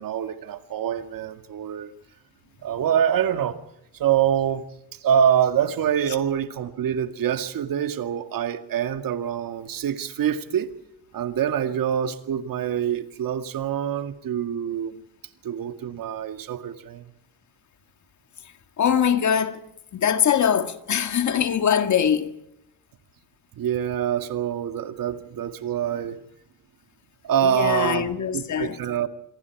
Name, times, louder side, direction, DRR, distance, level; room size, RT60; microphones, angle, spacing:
voice 1, 0.0-1.9 2.6-3.6 3.9-10.7 11.1-15.0 15.4-17.1 23.6-26.2 27.2-29.1, right 9 dB, 55° right, 2.1 m, -25 dB
voice 2, 18.8-19.6 19.9-22.3 27.4-28.8, left 8 dB, 45° left, 2.1 m, -22 dB
27.0 x 22.5 x 4.7 m
cardioid pair, 110°, 40 cm